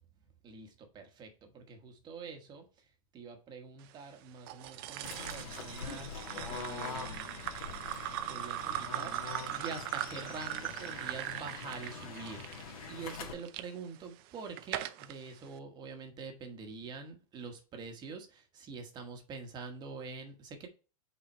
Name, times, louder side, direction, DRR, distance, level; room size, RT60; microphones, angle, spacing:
voice 1, 0.4-2.9 3.1-7.4 8.3-20.7, right 4 dB, 25° right, 1.2 m, -46 dB
sound 1, 4.5-13.6 14.2-15.1, right 14 dB, 45° right, 0.5 m, -40 dB
Fowl / Bird, 5.0-13.3, left 5 dB, 85° left, 2.0 m, -44 dB
5.8 x 4.2 x 4.2 m
hypercardioid pair, 140°, 18 cm